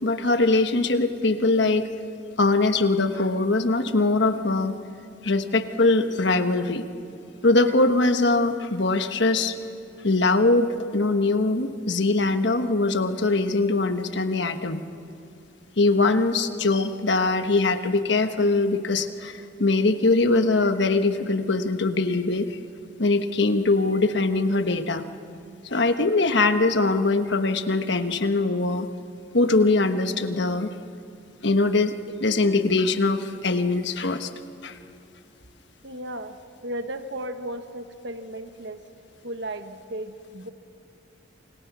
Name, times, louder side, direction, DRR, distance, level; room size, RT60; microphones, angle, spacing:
voice 1, 0.0-1.9 2.4-4.8 5.2-6.8 7.4-9.5 10.0-14.8 15.8-22.6 23.0-25.0 25.6-28.9 29.3-30.7 31.4-34.3 34.6-34.8, left 3 dB, 60° left, 8 dB, 1.3 m, -22 dB
voice 2, 35.8-36.4 36.6-38.9 39.2-40.5, right 1 dB, 60° right, 8 dB, 1.3 m, -35 dB
28.0 x 27.5 x 6.1 m, 2.7 s
head